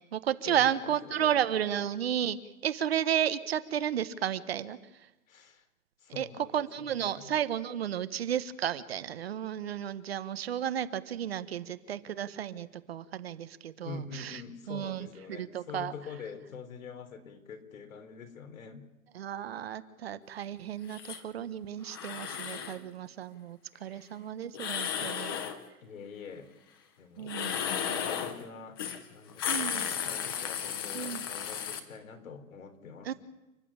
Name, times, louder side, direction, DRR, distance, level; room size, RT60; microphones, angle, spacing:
voice 1, 0.1-2.4 2.6-5.1 6.1-14.4 14.7-15.9 19.1-25.4 27.2-27.6 29.5-29.9 30.9-31.2 33.0-33.1, right 9 dB, 45° right, 13 dB, 1.1 m, -33 dB
voice 2, 1.0-1.4 5.3-5.7 6.0-7.3 13.8-18.9 23.7-24.1 25.8-26.5 27.0-28.8 29.1-33.1, left 5 dB, 75° left, 7 dB, 3.8 m, -45 dB
sound 1, 20.9-21.2 21.9-22.8 24.5-25.6 27.2-28.4 28.8-29.0 29.3-31.8, left 8 dB, 15° left, 0.8 m, -34 dB
29.5 x 11.0 x 8.7 m, 0.98 s
hypercardioid pair, 180°, 41 cm